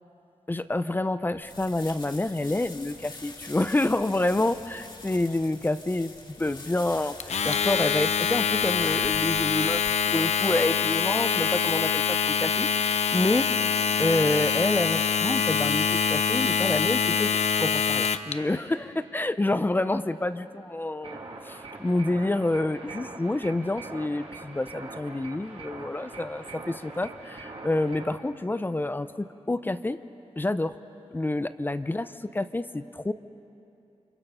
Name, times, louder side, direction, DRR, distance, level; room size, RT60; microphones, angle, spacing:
voice 1, 0.5-7.1 7.4-13.5 14.0-30.0 30.4-30.8 31.1-33.1, left 2 dB, 20° left, 12 dB, 0.6 m, -28 dB
sound 1, 1.4-9.9, left 3 dB, 50° left, 2.5 m, -45 dB
Domestic sounds home sounds, 7.2-18.3, left 6 dB, 85° left, 0.7 m, -25 dB
sound 2, 21.0-28.1, right 3 dB, 60° right, 2.5 m, -42 dB
29.5 x 26.5 x 5.6 m, 2.8 s
wide cardioid pair, 135°, 11 cm